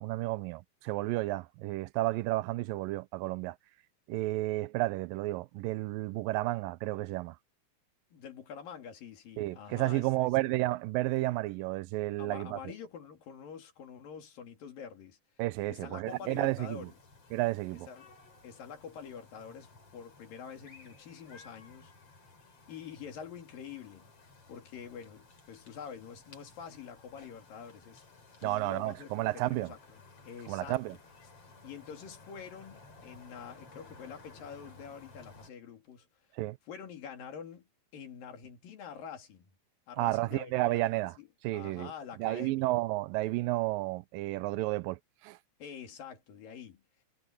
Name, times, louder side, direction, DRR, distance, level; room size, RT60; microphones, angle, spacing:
voice 1, 0.0-3.6 4.1-7.4 9.4-12.6 15.4-16.9 17.3-17.9 28.4-29.7 30.5-31.0 36.4-36.6 40.0-41.2 41.4-41.9 42.2-45.4, right 19 dB, 85° right, 2.3 m, -32 dB
voice 2, 8.1-10.3 12.2-15.2 15.7-16.9 17.9-18.1 18.4-21.9 22.7-24.1 24.5-28.0 28.4-30.0 30.2-30.8 31.6-36.1 36.7-39.5 39.9-42.8 45.6-46.8, left 7 dB, 75° left, 4.4 m, -46 dB
sound 1, 16.1-35.5, left 3 dB, 45° left, 5.3 m, -57 dB
omnidirectional pair, 4.0 m